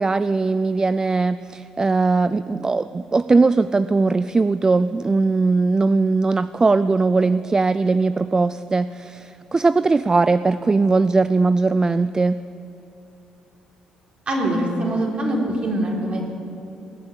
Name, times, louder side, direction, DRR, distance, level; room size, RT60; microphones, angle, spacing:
voice 1, 0.0-12.4, right 3 dB, 25° right, 14 dB, 0.3 m, -19 dB
voice 2, 14.3-16.2, right 1 dB, 50° right, -2 dB, 4.1 m, -23 dB
19.0 x 7.9 x 8.6 m, 2.8 s
supercardioid pair, 65°, 3 cm